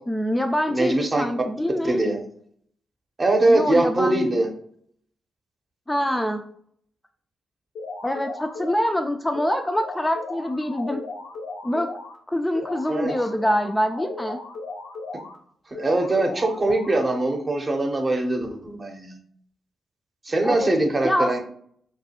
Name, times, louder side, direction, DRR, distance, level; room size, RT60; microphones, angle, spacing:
voice 1, 0.1-2.0 3.5-4.3 5.9-6.4 8.0-11.0 11.6-11.9 12.3-14.4 20.4-20.7 21.0-21.4, equal, 15° left, 5 dB, 0.3 m, -25 dB
voice 2, 0.7-1.3 1.8-2.2 3.2-4.5 12.9-13.1 15.7-19.2 20.2-21.4, right 2 dB, 35° right, 3 dB, 0.7 m, -22 dB
sound 1, 7.7-8.9 9.3-12.1 12.5-15.3 15.7-17.3, left 3 dB, 80° left, 0.5 m, -36 dB
2.3 x 2.2 x 2.8 m, 0.63 s
hypercardioid pair, 40°, 0 cm